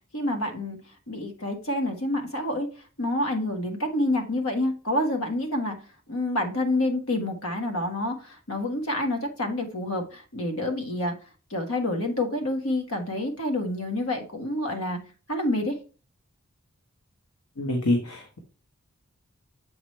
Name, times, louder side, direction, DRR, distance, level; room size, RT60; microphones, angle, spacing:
voice 1, 0.1-0.8 1.1-2.7 3.0-5.8 6.1-11.1 11.5-15.0 15.3-15.8, left 1 dB, 70° left, 4 dB, 1.5 m, -28 dB
voice 2, 17.6-18.4, left 1 dB, 85° left, 2 dB, 1.2 m, -26 dB
7.2 x 5.0 x 3.1 m, 0.35 s
head